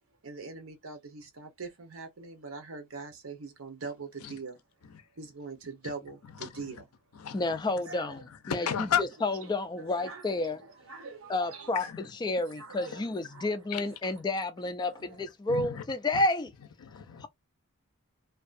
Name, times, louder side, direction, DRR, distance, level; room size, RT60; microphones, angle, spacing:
voice 1, 0.2-4.6 5.2-6.8 7.8-8.1 9.8-11.9 12.6-13.5 14.8-15.2, right 4 dB, 65° right, 0.8 m, -43 dB
voice 2, 6.3-6.8 7.1-7.6 8.3-9.0 11.7-12.1 13.7-14.1 15.0-15.8 16.1-16.2 16.8-17.3, left 8 dB, 85° left, 0.5 m, -35 dB
voice 3, 7.3-8.2 8.5-8.7 9.2-10.6 11.3-11.8 12.2-16.5 17.2-17.3, left 2 dB, 20° left, 0.3 m, -30 dB
2.6 x 2.3 x 2.4 m
head